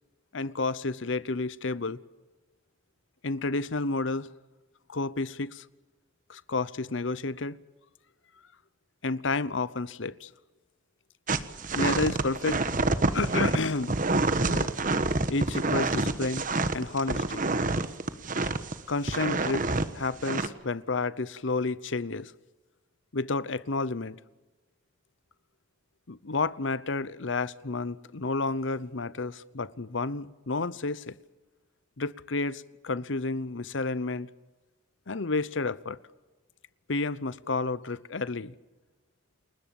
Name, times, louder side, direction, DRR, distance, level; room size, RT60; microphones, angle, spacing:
voice 1, 0.3-2.0 3.2-4.3 4.9-5.7 6.3-7.6 9.0-10.3 11.7-12.6 13.1-14.0 14.5-14.7 15.3-16.5 16.7-17.4 18.9-19.7 19.9-22.3 23.1-24.2 26.1-31.2 32.0-34.3 35.1-36.0 36.9-38.5, left 3 dB, 65° left, 0.8 m, -30 dB
sound 1, 11.3-18.7 19.1-19.9 20.2-20.5, right 3 dB, 40° right, 1.3 m, -27 dB
29.5 x 21.0 x 7.2 m
head